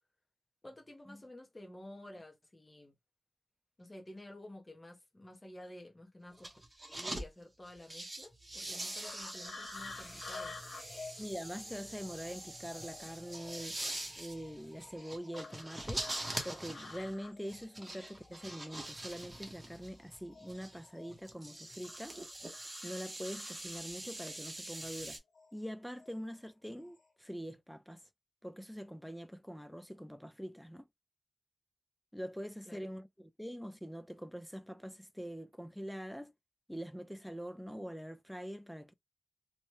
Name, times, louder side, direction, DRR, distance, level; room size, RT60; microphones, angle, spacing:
voice 1, 0.6-2.9 3.8-6.5 6.9-10.6 17.9-18.0 32.7-32.9, left 1 dB, 20° left, 0.7 m, -51 dB
sound 1, 6.3-7.3 7.7-25.2, right 1 dB, 20° right, 0.8 m, -44 dB
sound 2, 9.0-19.0 19.3-21.3 21.8-24.1 25.3-25.5 26.0-26.5 26.7-27.0, left 4 dB, 85° left, 0.8 m, -51 dB
voice 2, 11.2-13.8 14.2-16.1 16.4-22.2 22.8-25.2 25.5-28.0 28.4-30.9 32.1-36.3 36.7-38.9, equal, ahead, 0.3 m, -44 dB
2.8 x 2.1 x 3.1 m
wide cardioid pair, 150°, 0 cm